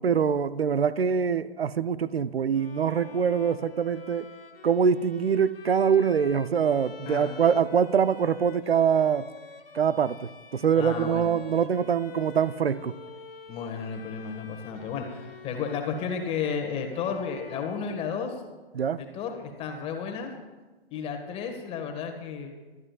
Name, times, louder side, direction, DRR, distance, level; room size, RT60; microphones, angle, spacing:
voice 1, 0.0-4.3 4.6-9.3 9.7-12.9 18.7-19.0, right 7 dB, 70° right, 0.6 m, -24 dB
Bowed string instrument, 2.5-18.6, left 4 dB, 65° left, 1.7 m, -47 dB
voice 2, 10.8-11.3 13.5-18.4 19.0-20.3 20.9-22.5, left 6 dB, 20° left, 1.6 m, -33 dB
24.5 x 12.5 x 2.4 m
figure-of-eight pair, 125°, 31 cm